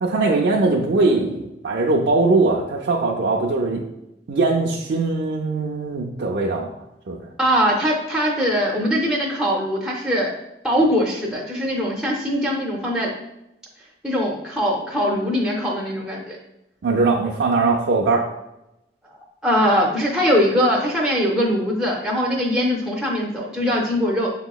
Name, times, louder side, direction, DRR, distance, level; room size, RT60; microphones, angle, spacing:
voice 1, 0.0-3.8 4.3-6.7 7.1-7.3 16.8-18.2, right 3 dB, 70° right, -2 dB, 0.5 m, -20 dB
voice 2, 7.4-10.3 10.6-13.1 14.0-16.4 19.4-24.3, equal, 5° right, -3 dB, 0.5 m, -21 dB
6.5 x 2.9 x 2.3 m, 0.89 s
head